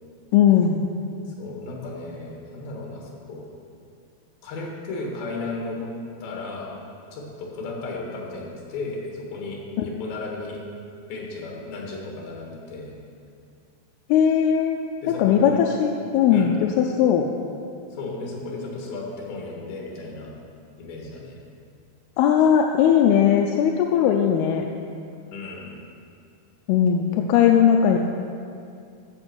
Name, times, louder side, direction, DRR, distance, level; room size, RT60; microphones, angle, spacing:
voice 1, 0.3-0.8 9.8-9.9 14.1-14.8 15.1-17.3 22.2-24.6 26.7-28.0, left 8 dB, 80° left, 2 dB, 2.5 m, -19 dB
voice 2, 1.3-3.4 4.4-5.9 6.2-6.7 7.1-10.6 11.1-12.9 15.0-15.6 16.3-16.5 17.9-20.3 20.8-21.4 25.3-25.7, left 3 dB, 65° left, -2 dB, 3.7 m, -34 dB
14.0 x 7.3 x 6.2 m, 2.5 s
omnidirectional pair, 4.8 m